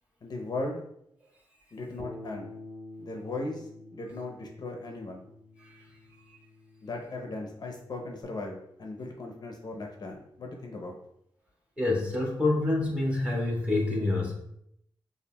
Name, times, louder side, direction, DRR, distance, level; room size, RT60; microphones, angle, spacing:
voice 1, 0.2-0.8 1.7-2.5 3.0-5.2 6.8-11.0, left 2 dB, 50° left, 1 dB, 0.6 m, -37 dB
Bass guitar, 2.0-8.2, left 2 dB, 5° left, 1.1 m, -48 dB
voice 2, 11.8-14.3, left 2 dB, 15° right, -3 dB, 1.5 m, -27 dB
6.6 x 2.5 x 2.2 m, 0.75 s
cardioid pair, 85°, 9 cm